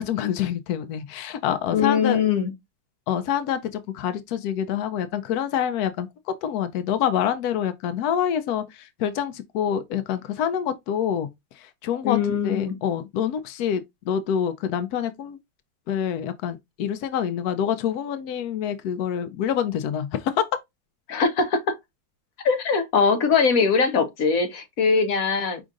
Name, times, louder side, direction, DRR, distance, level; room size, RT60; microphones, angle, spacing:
voice 1, 0.0-2.2 3.1-6.1 6.4-11.3 11.5-12.2 12.4-15.4 15.9-20.4, left 9 dB, 85° left, 0.8 m, -26 dB
voice 2, 1.7-2.5 12.0-12.8 21.1-21.6 22.4-25.6, left 5 dB, 50° left, 1.2 m, -21 dB
5.1 x 3.7 x 2.4 m
omnidirectional pair, 2.2 m